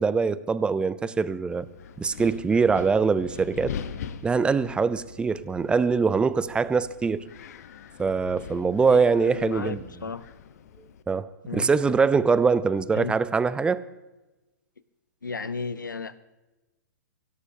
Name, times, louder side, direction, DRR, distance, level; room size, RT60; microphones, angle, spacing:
voice 1, 0.0-1.7 2.0-3.8 4.2-7.2 8.0-9.8 11.1-13.8, right 5 dB, 10° right, 16 dB, 0.6 m, -23 dB
Wind, 1.5-11.0, left 7 dB, 55° left, 1.1 m, -42 dB
voice 2, 8.8-10.2 11.4-11.7 12.9-13.2 15.2-16.2, left 4 dB, 85° left, 15 dB, 0.9 m, -34 dB
24.0 x 17.0 x 2.8 m, 1.1 s
figure-of-eight pair, 120°, 10 cm